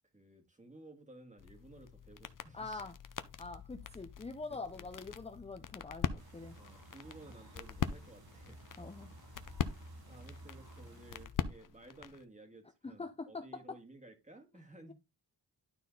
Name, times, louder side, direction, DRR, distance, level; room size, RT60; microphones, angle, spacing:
voice 1, 0.1-2.9 4.5-4.9 6.6-8.7 9.6-14.9, right 2 dB, 15° right, 2.0 m, -56 dB
sound 1, 1.4-12.2, left 7 dB, 50° left, 0.7 m, -42 dB
voice 2, 2.5-2.9 3.4-6.6 8.8-9.1 12.8-13.8, left 3 dB, 15° left, 0.6 m, -44 dB
sound 2, 6.2-11.3, right 1 dB, 60° right, 2.8 m, -54 dB
12.0 x 4.2 x 3.9 m
wide cardioid pair, 145°, 41 cm